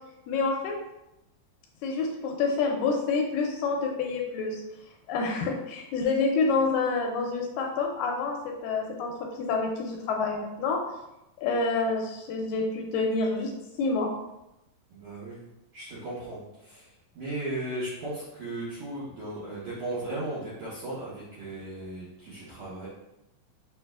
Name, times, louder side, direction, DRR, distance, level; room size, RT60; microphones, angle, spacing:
voice 1, 0.3-0.8 1.8-4.6 5.1-10.8 11.4-13.5 13.8-14.1, left 4 dB, 80° left, 1 dB, 2.1 m, -28 dB
voice 2, 14.9-15.4 15.7-16.9 17.1-22.9, right 2 dB, 70° right, -10 dB, 1.5 m, -36 dB
6.5 x 2.7 x 2.3 m, 0.91 s
omnidirectional pair, 4.1 m